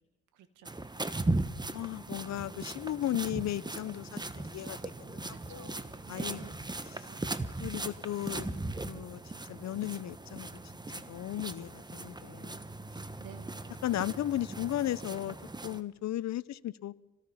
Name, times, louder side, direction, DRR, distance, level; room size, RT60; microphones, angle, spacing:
voice 1, 0.3-0.9 5.3-6.6 6.9-7.2 13.2-13.8, right 9 dB, 85° right, 2.4 m, -53 dB
sound 1, 0.7-15.8, right 2 dB, 15° right, 1.2 m, -38 dB
voice 2, 1.7-5.8 6.1-6.4 7.0-7.1 7.6-8.6 8.9-9.2 9.5-10.5 10.9-12.6 13.8-15.4 15.6-17.0, left 13 dB, 60° left, 0.8 m, -35 dB
27.5 x 18.0 x 5.7 m
cardioid pair, 90°, 30 cm